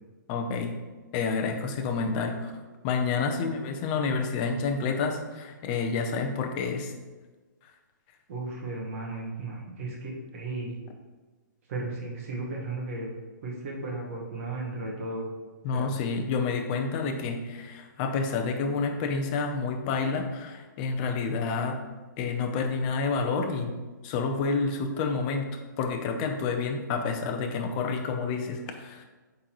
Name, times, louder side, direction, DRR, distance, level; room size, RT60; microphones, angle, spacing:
voice 1, 0.3-0.8 1.1-2.5 2.8-6.9 15.6-21.8 22.2-23.7 24.0-25.5 25.8-29.0, left 4 dB, 25° left, 4 dB, 0.6 m, -29 dB
voice 2, 8.3-10.7 11.7-13.1 13.4-15.3 15.7-16.0, right 2 dB, 45° right, -1 dB, 1.4 m, -35 dB
8.4 x 3.9 x 3.0 m, 1.3 s
hypercardioid pair, 160°, 11 cm